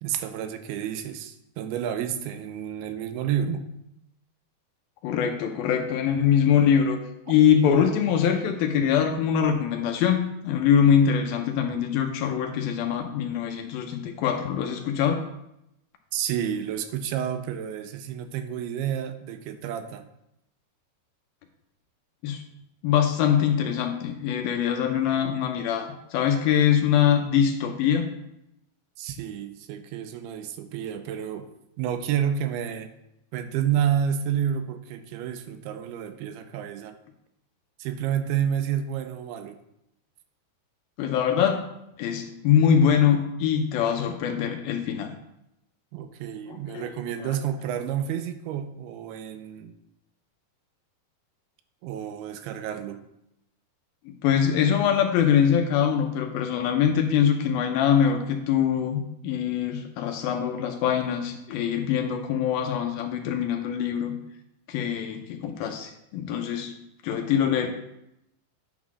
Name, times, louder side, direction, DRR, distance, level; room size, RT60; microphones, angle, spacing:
voice 1, 0.0-3.7 16.1-20.1 29.0-31.5 31.8-32.9 33.3-37.0 37.8-39.6 45.9-49.7 51.8-53.0, right 9 dB, 85° right, 8 dB, 2.5 m, -30 dB
voice 2, 5.0-7.0 7.3-15.2 22.2-22.4 22.8-28.1 41.0-41.7 42.0-45.1 46.5-46.9 47.2-47.3 54.1-64.1 64.7-66.7 67.0-67.7, left 8 dB, 80° left, 4 dB, 2.4 m, -23 dB
9.4 x 3.8 x 6.0 m, 0.83 s
omnidirectional pair, 4.6 m